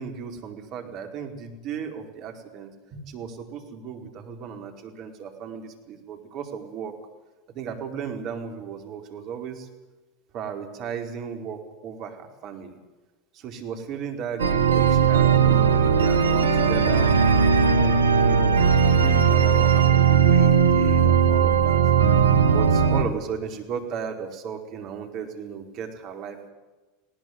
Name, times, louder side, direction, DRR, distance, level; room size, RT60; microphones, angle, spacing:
voice 1, 0.0-6.9 7.5-9.7 10.3-12.8 13.3-17.2 17.6-18.6 19.0-21.8 22.5-26.5, right 6 dB, 50° right, 5 dB, 4.6 m, -35 dB
sound 1, 14.4-23.0, right 6 dB, 85° right, 1.7 m, -18 dB
20.0 x 18.5 x 9.6 m, 1.2 s
hypercardioid pair, 85°, 0 cm